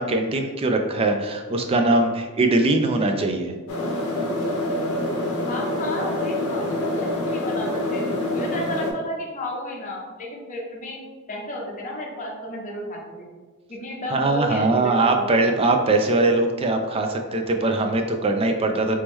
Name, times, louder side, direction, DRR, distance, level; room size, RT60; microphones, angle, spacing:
voice 1, 0.0-3.5 14.1-19.0, right 2 dB, 25° right, 5 dB, 0.3 m, -21 dB
sound 1, 3.7-8.9, left 1 dB, 70° left, 0.6 m, -26 dB
voice 2, 5.4-8.0 8.3-13.2 13.7-15.3, left 1 dB, 35° left, -1 dB, 0.7 m, -33 dB
3.0 x 3.0 x 3.5 m, 1.3 s
head